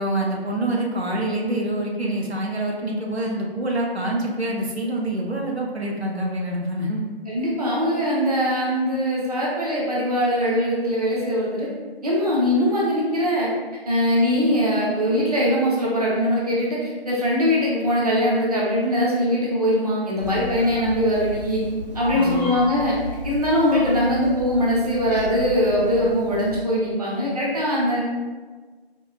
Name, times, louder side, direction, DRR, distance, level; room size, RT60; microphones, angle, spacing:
voice 1, 0.0-7.0 22.1-22.5, right 1 dB, 90° right, -1 dB, 0.7 m, -26 dB
voice 2, 7.3-11.7 12.0-13.5 13.8-21.6 21.9-23.0 23.2-28.0, equal, 40° right, -5 dB, 0.7 m, -21 dB
Meow, 20.2-26.6, left 1 dB, 40° left, 0.6 m, -33 dB
4.3 x 2.3 x 2.4 m, 1.4 s
figure-of-eight pair, 155°, 31 cm